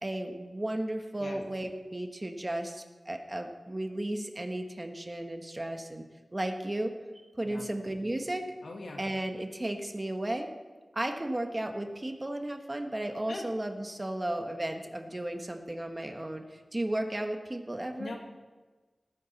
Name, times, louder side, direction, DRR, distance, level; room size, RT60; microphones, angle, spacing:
voice 1, 0.0-6.0 6.3-6.9 7.4-8.5 9.0-10.5 10.9-18.1, right 1 dB, 30° right, 5 dB, 1.4 m, -34 dB
voice 2, 8.6-9.0 13.3-13.4 18.0-18.2, left 3 dB, 90° left, 2 dB, 1.7 m, -40 dB
19.0 x 9.5 x 4.2 m, 1.3 s
wide cardioid pair, 60°, 0 cm